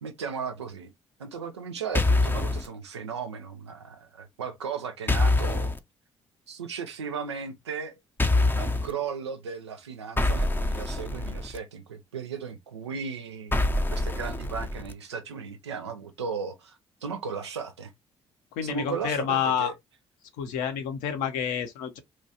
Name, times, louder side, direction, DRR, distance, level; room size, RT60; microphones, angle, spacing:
voice 1, 0.0-0.9 1.2-5.7 6.5-8.0 8.6-13.6 13.9-17.9 18.6-19.7, right 6 dB, 85° right, 0.5 m, -36 dB
sound 1, 1.9-2.7 5.1-5.8 8.2-8.9 10.2-11.6 13.5-14.9, left 2 dB, 15° left, 0.5 m, -25 dB
voice 2, 18.6-19.7 20.4-22.0, left 8 dB, 65° left, 0.7 m, -28 dB
3.0 x 2.3 x 2.7 m
figure-of-eight pair, 45°, 14 cm